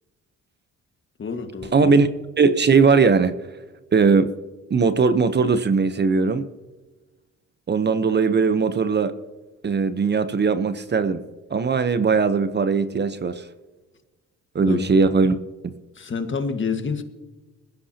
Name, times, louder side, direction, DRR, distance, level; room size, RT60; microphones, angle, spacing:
voice 1, 1.2-2.0 14.7-14.9 15.9-17.0, left 5 dB, 40° left, 7 dB, 1.7 m, -28 dB
voice 2, 1.7-2.1 2.4-3.3 3.9-4.3 4.7-6.5 7.7-9.1 9.6-11.2 11.5-13.4 14.5-15.4 15.6-15.7, right 4 dB, 35° right, 11 dB, 0.9 m, -19 dB
20.5 x 15.5 x 2.9 m, 1.2 s
cardioid pair, 90°, 30 cm